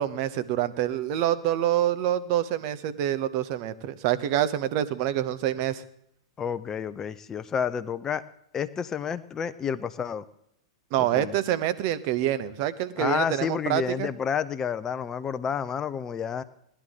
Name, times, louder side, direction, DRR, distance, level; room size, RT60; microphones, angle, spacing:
voice 1, 0.0-5.8 10.9-14.1, right 12 dB, 45° right, 12 dB, 0.9 m, -26 dB
voice 2, 6.4-8.2 8.5-10.2 11.0-11.3 13.0-16.4, left 7 dB, 20° left, 12 dB, 0.7 m, -30 dB
18.0 x 11.5 x 3.8 m, 0.73 s
figure-of-eight pair, 100°, 2 cm